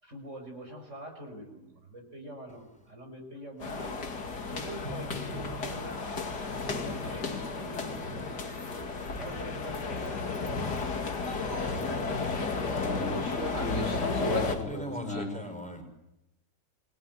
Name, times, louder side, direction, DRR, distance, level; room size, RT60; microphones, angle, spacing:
voice 1, 0.0-4.0 4.4-6.0 6.4-10.5, equal, 40° right, 4 dB, 5.7 m, -45 dB
sound 1, 3.6-14.6, left 4 dB, 60° left, 3.0 m, -33 dB
sound 2, 4.8-5.9 6.6-7.5 7.9-8.6 9.2-9.8, equal, 55° right, 6.2 m, -44 dB
voice 2, 12.7-15.4, left 2 dB, 45° left, 1 dB, 3.8 m, -34 dB
voice 3, 14.6-15.8, equal, 5° left, 5 dB, 5.2 m, -40 dB
27.0 x 21.5 x 9.5 m, 0.92 s
omnidirectional pair, 2.0 m